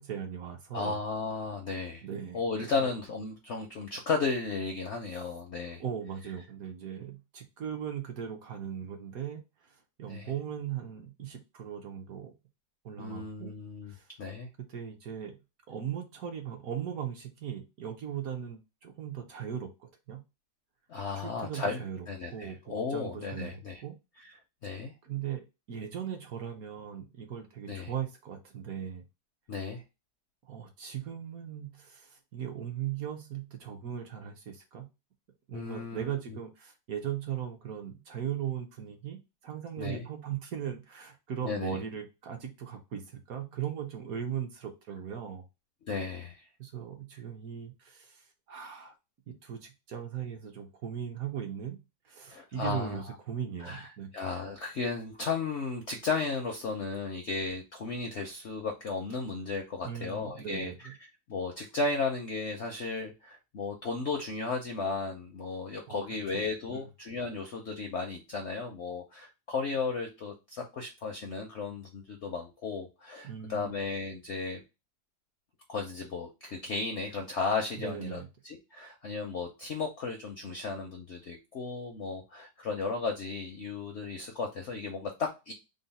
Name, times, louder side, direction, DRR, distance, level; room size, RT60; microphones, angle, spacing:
voice 1, 0.0-1.0 2.0-2.9 5.8-12.3 12.8-13.5 13.8-14.1 14.7-15.4 15.7-20.2 21.2-24.0 25.0-29.0 30.4-34.9 35.5-45.4 46.6-48.9 49.3-54.1 59.8-60.9 65.9-66.0 66.3-66.4 66.7-66.9 73.2-73.8 77.8-78.3, right 9 dB, 65° right, 4 dB, 1.0 m, -38 dB
voice 2, 0.7-2.0 2.3-5.8 10.1-10.3 13.0-13.9 14.2-14.5 20.9-23.8 24.6-24.9 27.7-27.9 29.5-29.8 35.5-36.4 39.8-40.0 41.4-41.8 45.8-46.4 52.3-53.0 53.6-53.9 54.1-60.9 61.3-74.6 75.7-85.5, left 4 dB, 70° left, 2 dB, 0.6 m, -34 dB
3.9 x 2.0 x 4.0 m, 0.25 s
omnidirectional pair, 1.9 m